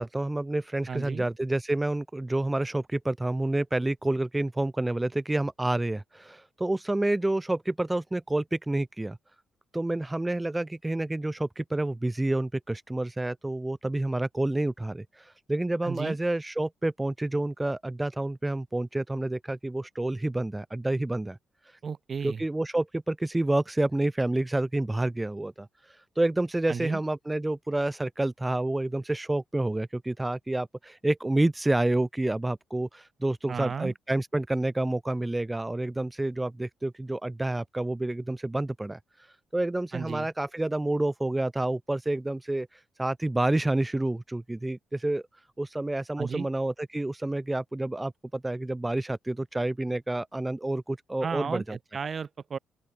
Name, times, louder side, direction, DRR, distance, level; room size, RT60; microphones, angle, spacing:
voice 1, 0.0-9.2 9.7-21.4 21.6-21.8 22.2-51.8, right 2 dB, 10° right, 0.4 m, -29 dB
voice 2, 0.9-1.3 15.8-16.2 21.8-22.4 26.7-27.0 33.5-33.9 39.9-40.3 46.2-46.5 51.2-52.6, right 6 dB, 45° right, 1.2 m, -34 dB
open air
cardioid pair, 90°, 0 cm